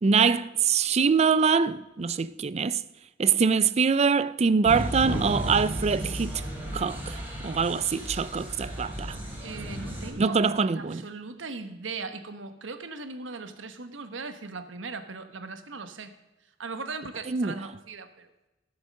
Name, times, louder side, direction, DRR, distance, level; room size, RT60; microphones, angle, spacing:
voice 1, 0.0-2.8 3.2-6.4 6.7-7.2 7.4-9.2 10.2-11.0 17.3-17.6, right 5 dB, 35° right, 0.4 m, -24 dB
sound 1, 4.6-10.1, equal, 10° right, 3.6 m, -34 dB
voice 2, 9.4-16.2 16.6-18.3, right 4 dB, 80° right, 1.1 m, -39 dB
16.5 x 7.2 x 6.5 m
head